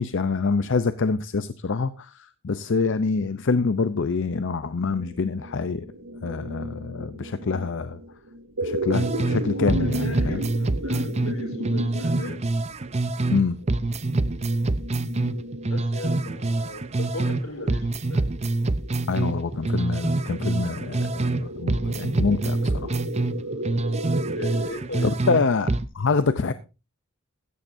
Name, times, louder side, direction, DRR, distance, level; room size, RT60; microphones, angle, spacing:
voice 1, 0.0-5.9 6.2-8.0 8.6-10.4 13.3-13.6 19.1-23.0 25.0-26.5, left 4 dB, 60° left, 0.6 m, -26 dB
sound 1, 4.9-24.7, right 1 dB, 90° right, 5.1 m, -35 dB
sound 2, 8.9-9.4 9.7-13.4 13.7-17.4 17.7-21.4 21.7-25.4 25.7-25.8, right 2 dB, 30° right, 0.6 m, -26 dB
voice 2, 9.5-12.4 15.7-18.3 24.3-25.3, left 1 dB, 80° left, 4.2 m, -37 dB
15.5 x 13.5 x 2.7 m
head